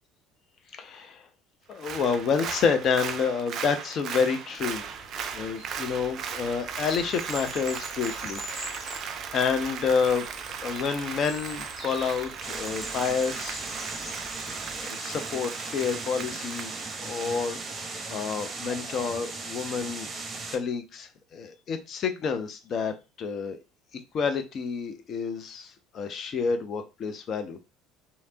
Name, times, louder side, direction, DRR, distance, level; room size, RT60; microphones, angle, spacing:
voice 1, 0.8-1.3 1.7-4.9 5.3-8.4 8.7-10.3 10.6-13.6 14.8-20.1 20.5-22.9 23.2-23.6 24.1-27.6, left 6 dB, 45° left, 0.4 m, -29 dB
Applause, 1.7-18.3 18.7-18.8, right 7 dB, 45° right, 0.4 m, -38 dB
sound 1, 4.6-14.9, equal, 20° left, 1.3 m, -44 dB
sound 2, 12.4-20.6, right 3 dB, 25° right, 0.8 m, -37 dB
3.2 x 2.7 x 2.7 m
figure-of-eight pair, 60°, 0 cm